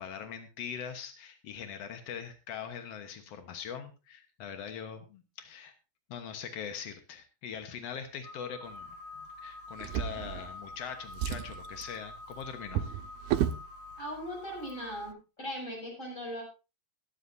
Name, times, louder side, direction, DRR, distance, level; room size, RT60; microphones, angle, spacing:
voice 1, 0.0-5.7 6.1-12.9, left 7 dB, 80° left, 7 dB, 1.4 m, -42 dB
sound 1, 8.2-15.1, left 3 dB, 60° left, 4.3 m, -47 dB
Drawer open or close, 9.8-10.8 11.1-13.7 14.6-14.7 15.1-15.2, right 10 dB, 75° right, 2.6 m, -34 dB
voice 2, 14.0-16.4, equal, 20° left, -1 dB, 6.7 m, -39 dB
22.0 x 10.0 x 2.7 m, 0.30 s
omnidirectional pair, 4.7 m